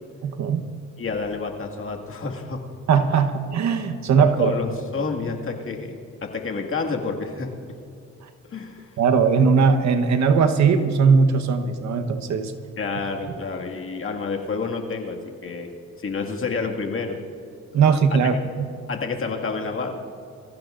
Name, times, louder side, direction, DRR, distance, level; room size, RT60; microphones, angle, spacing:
voice 1, 0.2-0.6 2.9-4.6 5.0-5.1 9.0-12.5 17.7-18.7, right 5 dB, 65° right, 8 dB, 1.2 m, -19 dB
voice 2, 1.0-2.6 4.1-7.5 8.5-8.9 12.8-15.7 16.0-17.2 18.1-18.4 18.9-20.0, left 4 dB, 45° left, 2 dB, 2.1 m, -29 dB
25.0 x 15.0 x 2.6 m, 2.5 s
cardioid pair, 90°, 30 cm